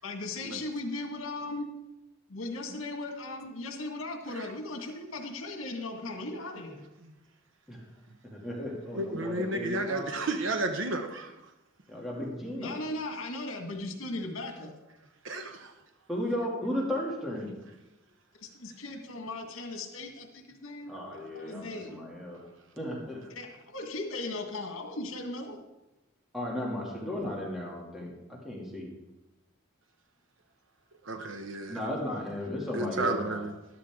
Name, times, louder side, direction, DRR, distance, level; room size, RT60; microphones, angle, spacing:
voice 1, 0.0-1.7 2.3-6.8 12.6-14.7 18.4-21.0 21.3-22.0 23.3-23.5 23.7-25.7, left 2 dB, 80° left, 4 dB, 1.9 m, -37 dB
voice 2, 8.2-10.2 11.9-12.8 16.1-17.5 20.9-22.5 22.8-23.2 26.3-28.9 31.7-33.4, left 1 dB, ahead, -4 dB, 2.6 m, -35 dB
voice 3, 8.9-11.3 14.6-14.7 15.2-15.7 31.0-31.8 32.7-33.5, right 2 dB, 65° right, 5 dB, 1.0 m, -32 dB
13.0 x 12.0 x 3.7 m, 1.0 s
head